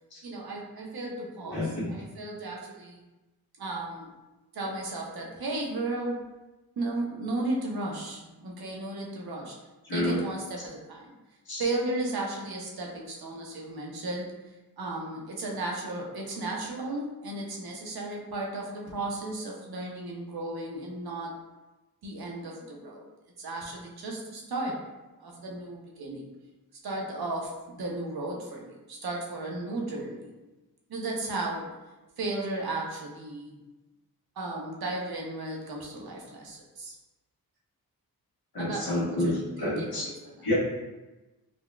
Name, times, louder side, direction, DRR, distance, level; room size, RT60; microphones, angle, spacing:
voice 1, 0.2-3.0 3.6-4.1 4.5-6.2 6.8-9.5 9.9-11.2 11.6-14.3 14.8-21.3 22.0-23.1 23.4-24.8 25.2-26.3 26.8-30.3 30.9-31.7 32.2-33.6 34.4-36.9 38.6-40.5, right 2 dB, 70° right, -1 dB, 0.8 m, -35 dB
voice 2, 1.5-1.9 9.9-10.2 11.5-11.6 38.5-40.0 40.4-40.5, left 1 dB, 70° left, -6 dB, 1.2 m, -29 dB
4.0 x 2.2 x 2.2 m, 1.1 s
cardioid pair, 65°, 38 cm